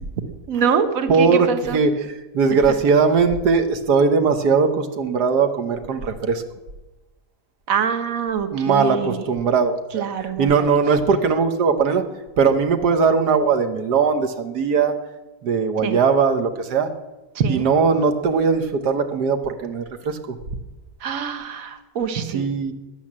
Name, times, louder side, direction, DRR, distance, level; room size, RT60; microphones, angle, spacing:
voice 1, 0.5-1.8 7.7-9.2 9.9-10.7 15.8-16.0 17.3-17.7 21.0-22.5, right 7 dB, 60° right, 8 dB, 1.6 m, -24 dB
voice 2, 1.1-6.4 8.5-12.0 12.4-15.0 15.4-16.9 17.5-20.4 22.3-22.7, right 5 dB, 85° right, 7 dB, 1.6 m, -20 dB
16.5 x 10.5 x 7.4 m, 1.1 s
omnidirectional pair, 1.7 m